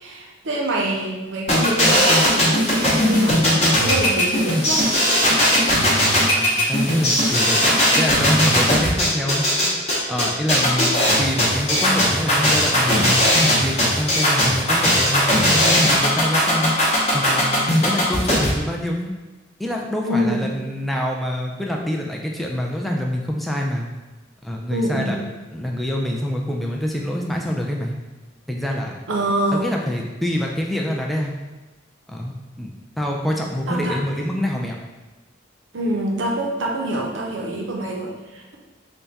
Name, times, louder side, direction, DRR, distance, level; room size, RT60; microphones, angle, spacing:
voice 1, 0.0-5.0 20.0-20.6 24.7-25.2 29.1-29.7 33.7-34.0 35.7-38.6, right 1 dB, 80° right, 0 dB, 0.6 m, -25 dB
sound 1, 1.5-18.5, equal, 35° left, 0.8 m, -18 dB
voice 2, 6.4-7.6 8.0-9.8 10.1-10.9 11.2-13.2 13.6-16.7 17.1-19.1 19.6-23.9 24.4-25.2 25.5-27.9 28.5-28.9 29.5-31.3 32.1-32.7 33.0-34.8, equal, ahead, -1 dB, 0.3 m, -25 dB
3.5 x 2.2 x 4.0 m, 1.2 s
head